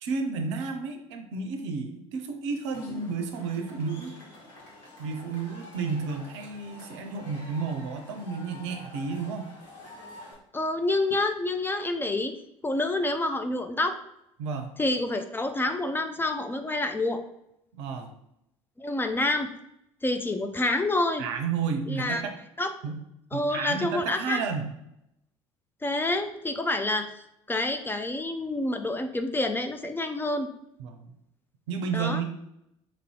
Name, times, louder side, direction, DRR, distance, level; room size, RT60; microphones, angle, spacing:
voice 1, 0.0-4.1 5.0-9.5 14.4-14.7 17.8-18.1 21.2-22.3 22.8-23.0 23.3-24.7 30.8-31.1 31.7-32.2, right 5 dB, 70° right, 5 dB, 0.5 m, -32 dB
Cheering / Crowd, 2.7-10.3, left 1 dB, 65° left, 1.3 m, -47 dB
voice 2, 10.5-12.3 12.6-14.0 14.8-17.2 18.8-19.5 20.0-21.2 21.9-22.2 22.6-22.7 23.3-24.4 25.8-27.1 27.5-30.5 31.9-32.2, left 2 dB, 15° left, 6 dB, 0.4 m, -28 dB
3.0 x 2.6 x 4.4 m, 0.80 s
figure-of-eight pair, 60°, 15 cm